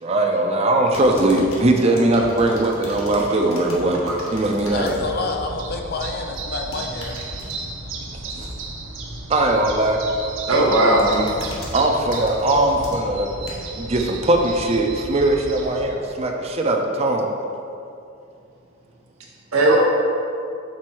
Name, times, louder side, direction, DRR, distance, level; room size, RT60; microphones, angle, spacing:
voice 1, 0.0-4.9 9.3-10.0 11.7-13.3 13.8-17.3, right 2 dB, 30° right, 2 dB, 0.5 m, -20 dB
sound 1, 0.9-5.0 5.4-5.7 6.5-7.6 9.9-10.3 10.7-13.8 14.4-14.5, left 1 dB, 80° left, 1.3 m, -38 dB
sound 2, 4.5-15.9, right 2 dB, 65° right, 0.8 m, -34 dB
voice 2, 4.7-7.2, left 3 dB, 50° left, 3 dB, 0.6 m, -28 dB
voice 3, 10.5-11.3 19.5-19.8, right 2 dB, 85° right, -2 dB, 1.2 m, -17 dB
6.2 x 4.2 x 4.5 m, 2.5 s
head